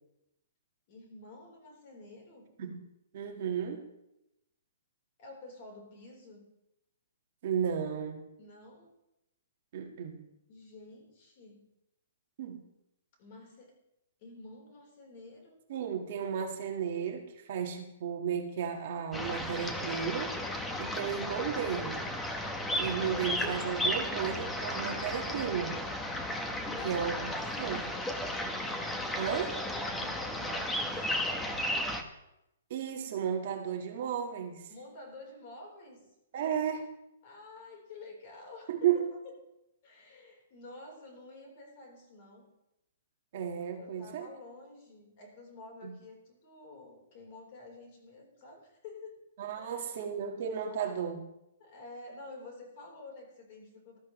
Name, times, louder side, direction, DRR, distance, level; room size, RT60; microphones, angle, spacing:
voice 1, 0.9-2.5 5.2-6.5 8.4-8.9 10.5-11.7 13.2-13.8 14.2-15.6 26.6-27.7 29.9-31.1 34.7-36.1 37.2-39.3 39.8-42.5 43.8-49.2 49.6-50.0 51.6-54.0, left 2 dB, 35° left, 1 dB, 3.9 m, -49 dB
voice 2, 3.1-3.9 7.4-8.2 9.7-10.3 12.4-12.6 15.7-20.4 20.8-22.1 22.8-25.8 26.8-27.3 27.6-27.8 29.2-29.6 32.7-34.7 36.3-36.9 38.7-39.0 43.3-44.3 45.8-45.9 49.4-51.2, right 8 dB, 40° right, 2 dB, 1.6 m, -34 dB
sound 1, 19.1-32.0, left 1 dB, 5° left, 0.9 m, -34 dB
20.0 x 13.0 x 3.1 m, 0.87 s
hypercardioid pair, 170°, 0 cm